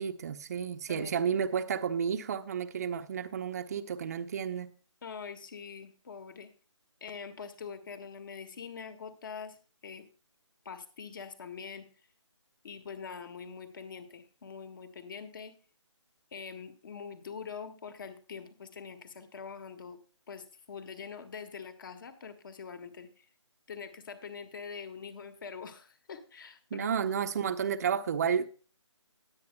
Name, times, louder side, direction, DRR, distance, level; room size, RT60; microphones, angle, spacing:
voice 1, 0.0-4.7 26.7-28.5, right 7 dB, 30° right, 0.7 m, -31 dB
voice 2, 0.9-1.3 5.0-6.5 7.0-9.6 9.8-10.1 10.6-11.9 12.6-15.5 16.3-20.0 20.3-23.3 23.7-27.2, left 6 dB, 45° left, 1.6 m, -44 dB
19.5 x 8.1 x 2.2 m
figure-of-eight pair, 150°, 16 cm